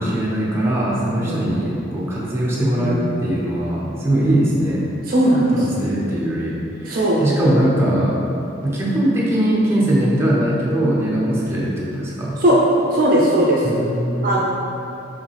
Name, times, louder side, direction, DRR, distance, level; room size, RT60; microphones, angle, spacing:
voice 1, 0.0-4.8 5.5-8.2 8.6-12.4 13.6-14.4, right 1 dB, 15° right, -6 dB, 0.7 m, -21 dB
voice 2, 5.1-5.6 6.9-7.2 12.4-12.6 12.9-13.6 14.2-14.4, right 1 dB, 45° right, -4 dB, 0.5 m, -17 dB
4.9 x 3.1 x 3.4 m, 2.7 s
head